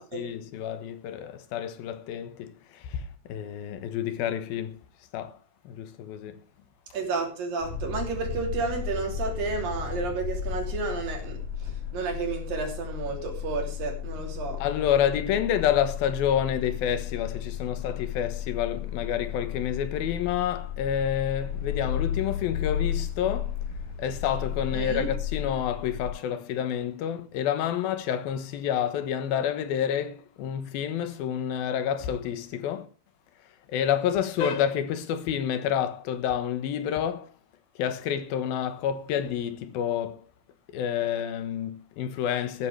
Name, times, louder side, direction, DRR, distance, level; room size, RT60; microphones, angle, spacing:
voice 1, 0.0-4.8 5.1-5.4 5.6-6.4 14.6-23.6 24.0-32.9 33.7-37.3 37.8-40.2 40.7-42.7, left 9 dB, 90° left, 3.1 m, -29 dB
voice 2, 6.9-11.4 11.9-14.6 24.7-25.1, right 4 dB, 75° right, 4.8 m, -31 dB
sound 1, 7.6-26.1, left 9 dB, 70° left, 7.6 m, -34 dB
14.5 x 13.0 x 3.3 m
omnidirectional pair, 4.1 m